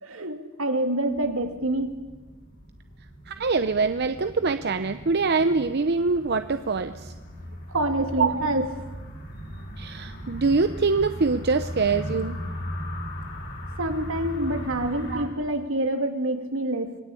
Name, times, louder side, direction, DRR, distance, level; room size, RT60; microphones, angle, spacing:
voice 1, 0.0-2.0 7.7-8.7 13.8-17.0, right 1 dB, 75° right, 6 dB, 2.5 m, -27 dB
sound 1, 1.1-15.2, equal, 55° left, 7.3 m, -38 dB
voice 2, 3.3-7.1 8.2-8.5 9.8-12.4 15.1-15.3, right 4 dB, 55° right, 10 dB, 0.8 m, -24 dB
26.5 x 20.0 x 8.5 m, 1.2 s
head